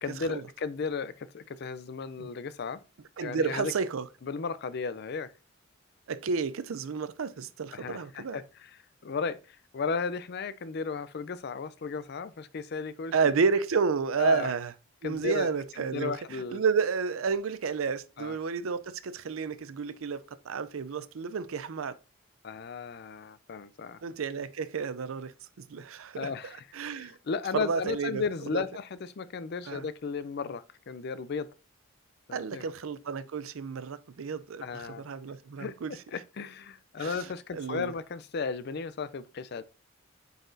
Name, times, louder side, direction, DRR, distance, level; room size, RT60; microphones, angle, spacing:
voice 1, 0.0-2.8 3.2-3.7 4.2-5.3 7.7-8.7 9.0-13.3 14.2-14.5 15.0-15.5 15.8-16.6 18.2-18.4 22.4-24.0 26.1-26.7 27.0-31.5 32.3-32.6 34.6-35.0 35.6-35.7 36.1-39.6, left 5 dB, 50° left, 0.4 m, -35 dB
voice 2, 3.2-4.1 6.1-8.4 13.1-14.7 15.0-22.0 24.0-25.3 25.6-26.3 26.7-27.2 27.5-28.2 28.5-28.6 29.7-29.9 32.3-35.9 37.0-37.9, right 5 dB, 85° right, 0.5 m, -31 dB
8.9 x 4.1 x 2.6 m
head